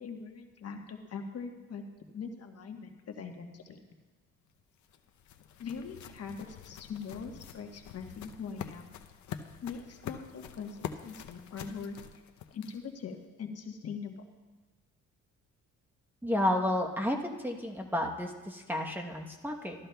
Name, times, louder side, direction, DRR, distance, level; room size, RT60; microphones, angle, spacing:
voice 1, 0.0-1.8 2.1-3.8 5.6-8.9 9.6-12.0 12.5-14.2, left 5 dB, 55° left, 4 dB, 1.2 m, -42 dB
sound 1, 4.5-13.0, left 9 dB, 70° left, 0.7 m, -46 dB
voice 2, 16.2-19.7, left 1 dB, 5° right, 1 dB, 1.0 m, -31 dB
14.0 x 13.0 x 2.3 m, 1.2 s
cardioid pair, 90°, 30 cm